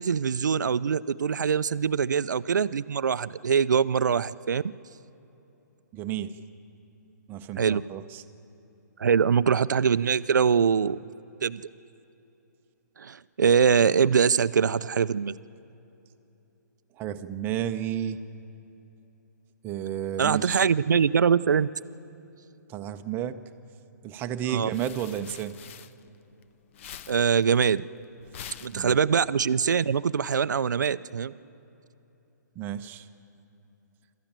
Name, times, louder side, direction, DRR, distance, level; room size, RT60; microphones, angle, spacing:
voice 1, 0.0-4.6 7.6-7.8 9.0-11.0 11.4-11.6 13.0-15.3 20.2-21.7 24.5-24.7 27.1-27.8 28.6-31.3, right 6 dB, 80° right, 16 dB, 0.5 m, -23 dB
voice 2, 5.9-6.4 7.3-8.2 17.0-18.2 19.6-20.6 22.7-23.4 24.0-25.6 28.7-29.0 32.6-33.1, right 10 dB, 20° right, 9 dB, 0.8 m, -32 dB
sound 1, 24.4-26.4 26.7-29.4, left 9 dB, 45° left, 0.7 m, -46 dB
26.5 x 13.5 x 7.4 m, 3.0 s
hypercardioid pair, 140°, 10 cm